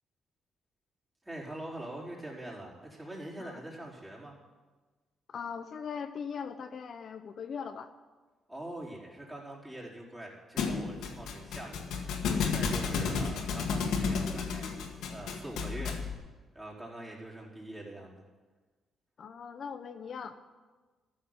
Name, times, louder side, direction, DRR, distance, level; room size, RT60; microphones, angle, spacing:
voice 1, 1.2-4.4 8.5-16.1 16.5-18.1, right 1 dB, 15° right, -4 dB, 4.5 m, -44 dB
voice 2, 5.3-7.9 19.2-20.4, left 6 dB, 55° left, 8 dB, 0.8 m, -40 dB
Thump thud, 10.6-16.1, left 5 dB, 85° left, 1.8 m, -32 dB
13.5 x 6.7 x 9.7 m, 1.3 s
cardioid pair, 90°, 0 cm